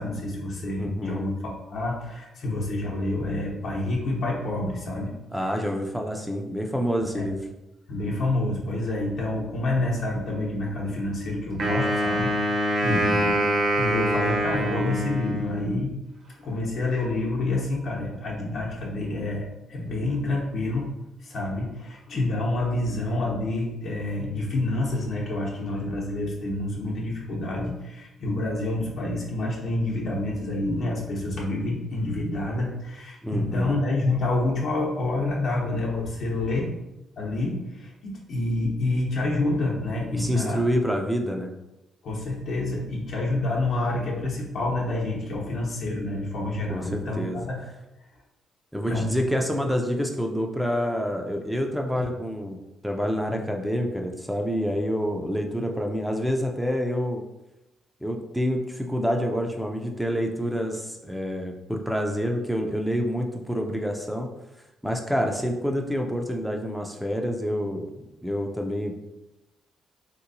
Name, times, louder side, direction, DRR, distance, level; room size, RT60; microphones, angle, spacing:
voice 1, 0.0-5.1 7.0-7.2 7.9-13.3 13.8-15.9 16.4-20.9 21.2-36.7 37.2-40.6 42.0-47.6 48.9-49.2 51.9-52.1, left 2 dB, 65° left, -4 dB, 0.7 m, -28 dB
voice 2, 0.8-1.3 5.3-7.4 12.8-13.3 33.2-33.7 40.1-41.5 46.7-47.4 48.7-52.6 52.8-57.2 58.0-64.3 64.8-69.0, equal, ahead, 2 dB, 0.4 m, -27 dB
Wind instrument woodwind instrument, 11.6-15.9, equal, 60° right, 0.9 m, -25 dB
3.3 x 2.9 x 2.6 m, 0.96 s
cardioid pair, 90°, 0 cm